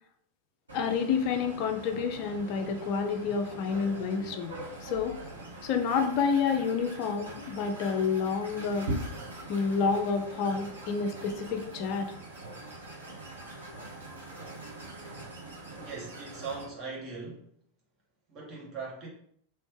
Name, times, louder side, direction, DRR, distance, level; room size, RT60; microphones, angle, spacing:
voice 1, 0.7-5.2 5.6-8.9 9.5-12.1, left 5 dB, 45° left, 6 dB, 0.5 m, -29 dB
sound 1, 0.7-16.7, right 1 dB, 75° right, 1.1 m, -42 dB
voice 2, 15.8-17.5 18.3-19.1, right 4 dB, 30° right, -5 dB, 1.5 m, -40 dB
3.2 x 3.1 x 3.2 m, 0.66 s
figure-of-eight pair, 90°, 0 cm